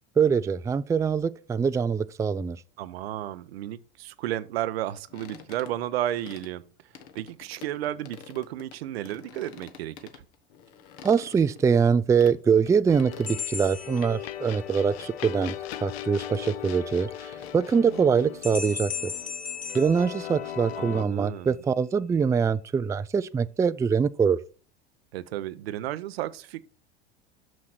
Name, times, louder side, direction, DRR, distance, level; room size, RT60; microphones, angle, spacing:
voice 1, 0.2-2.6 11.0-15.5 15.8-19.1 19.7-24.4, right 6 dB, 10° right, 0.3 m, -24 dB
voice 2, 2.8-6.7 7.1-10.2 20.8-21.6 25.1-26.6, right 13 dB, 80° right, 0.7 m, -33 dB
sound 1, 5.1-6.5 7.0-8.8 9.1-12.4 12.7-12.8 13.0-13.7 14.1-14.2 14.8-15.1 15.3-16.1 16.3-16.4 16.7-18.6, left 8 dB, 65° left, 1.3 m, -47 dB
sound 2, 12.9-21.1, left 11 dB, 85° left, 0.6 m, -38 dB
sound 3, 13.3-14.8 18.4-20.9, left 6 dB, 25° left, 1.4 m, -37 dB
6.4 x 6.2 x 5.9 m
hypercardioid pair, 90°, 30 cm